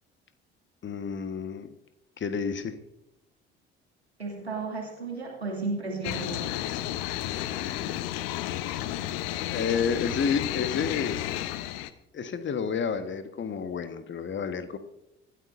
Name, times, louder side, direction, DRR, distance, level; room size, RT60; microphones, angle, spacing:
voice 1, 0.8-1.7 2.2-2.8 7.5-7.6 7.8-7.9 9.5-11.2 12.1-14.8, left 6 dB, 35° left, 10 dB, 1.4 m, -30 dB
voice 2, 4.2-6.6, right 3 dB, 85° right, 0 dB, 2.4 m, -34 dB
sound 1, 6.0-11.9, left 13 dB, 60° left, 0.9 m, -32 dB
24.5 x 13.0 x 2.6 m, 0.88 s
figure-of-eight pair, 50°, 31 cm